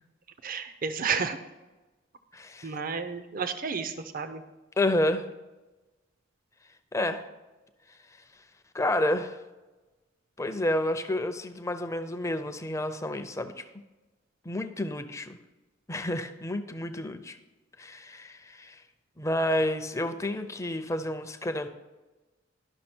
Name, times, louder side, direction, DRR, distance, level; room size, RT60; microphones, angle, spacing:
voice 1, 0.4-1.4 2.6-4.4, right 5 dB, 45° right, 10 dB, 0.6 m, -31 dB
voice 2, 2.3-2.8 4.8-5.3 6.9-7.3 8.7-9.4 10.4-13.6 14.4-15.4 15.9-17.4 17.8-18.8 19.2-21.7, left 1 dB, 15° left, 9 dB, 0.5 m, -30 dB
12.0 x 5.9 x 4.4 m, 1.1 s
head